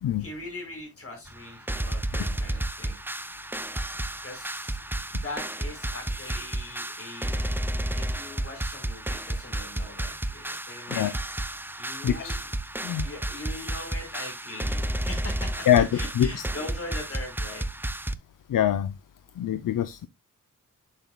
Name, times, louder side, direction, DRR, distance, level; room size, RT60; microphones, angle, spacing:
voice 1, 0.2-3.0 4.2-4.8 5.1-7.5 7.9-11.2 11.8-12.5 13.0-17.8, left 2 dB, 45° left, 4.5 m, -41 dB
sound 1, 1.3-18.1, right 1 dB, 5° right, 0.5 m, -32 dB
voice 2, 12.0-12.4 12.8-13.1 15.7-15.9 16.2-16.3 18.5-18.9 19.4-20.1, left 11 dB, 75° left, 0.6 m, -24 dB
8.8 x 7.3 x 2.2 m
wide cardioid pair, 90°, 33 cm